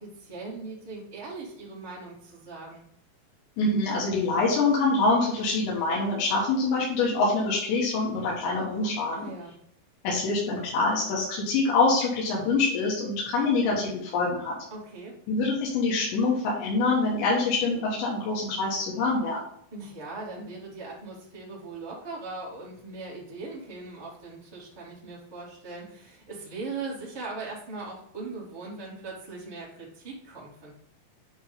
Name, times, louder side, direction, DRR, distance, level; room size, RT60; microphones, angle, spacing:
voice 1, 0.0-2.8 9.1-9.6 14.7-15.2 19.7-30.7, right 3 dB, 10° right, -5 dB, 1.1 m, -39 dB
voice 2, 3.6-9.2 10.0-14.6 15.3-19.4, left 3 dB, 90° left, -4 dB, 3.8 m, -25 dB
9.4 x 3.2 x 5.1 m, 0.72 s
omnidirectional pair, 4.9 m